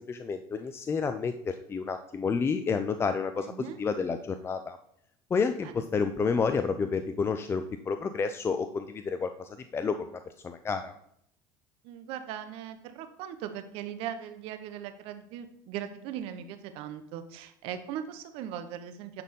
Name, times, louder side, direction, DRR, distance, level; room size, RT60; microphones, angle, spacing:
voice 1, 0.1-3.5 3.8-4.8 5.3-11.0, left 5 dB, 25° left, 8 dB, 0.5 m, -30 dB
voice 2, 3.4-3.8 5.6-5.9 11.8-19.2, right 10 dB, 65° right, 9 dB, 1.1 m, -39 dB
9.9 x 4.3 x 5.4 m, 0.71 s
supercardioid pair, 110°, 10 cm